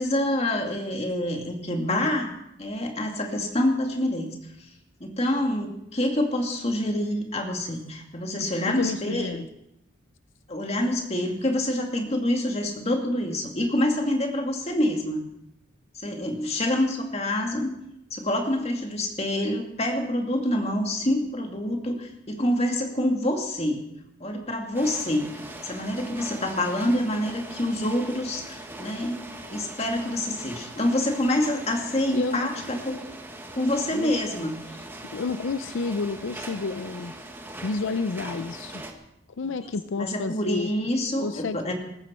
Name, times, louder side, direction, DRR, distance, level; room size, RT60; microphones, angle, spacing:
voice 1, 0.0-2.3 2.6-4.4 5.0-9.5 10.5-15.2 15.9-17.7 18.1-23.8 24.2-29.2 29.5-33.1 33.5-34.6 40.0-41.7, left 1 dB, 35° left, 2 dB, 2.2 m, -26 dB
voice 2, 8.6-9.5 32.1-32.5 33.9-34.1 34.7-34.9 35.1-37.1 37.6-38.8 39.4-40.7 41.2-41.6, left 4 dB, 80° left, 12 dB, 0.5 m, -30 dB
sound 1, 24.7-38.9, right 1 dB, 10° right, 1.2 m, -41 dB
18.0 x 14.5 x 4.4 m, 0.81 s
head